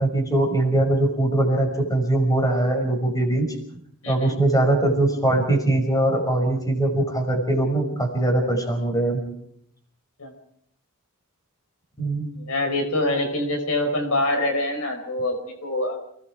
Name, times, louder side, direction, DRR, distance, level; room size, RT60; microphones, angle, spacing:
voice 1, 0.0-3.5 4.1-9.2 12.0-12.3, right 1 dB, 15° left, 3 dB, 5.6 m, -21 dB
voice 2, 4.0-4.3 10.2-10.3 12.3-16.0, left 1 dB, 70° left, 5 dB, 5.0 m, -25 dB
30.0 x 20.0 x 4.9 m, 0.70 s
head